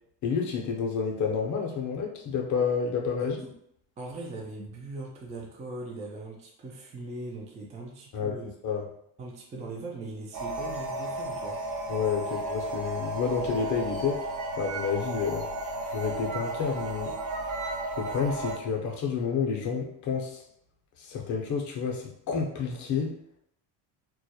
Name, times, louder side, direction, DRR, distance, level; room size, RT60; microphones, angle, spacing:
voice 1, 0.2-3.4 8.1-8.4 8.6-8.9 11.9-14.3 14.6-15.5 15.9-17.1 18.0-20.4 21.0-23.1, left 6 dB, 40° left, 1 dB, 0.6 m, -29 dB
voice 2, 3.2-3.5 4.0-8.5 9.2-11.6, right 2 dB, 15° right, -1 dB, 0.3 m, -40 dB
sound 1, 10.3-18.6, right 2 dB, 40° right, 0.7 m, -33 dB
2.2 x 2.0 x 2.7 m, 0.73 s
supercardioid pair, 105°, 46 cm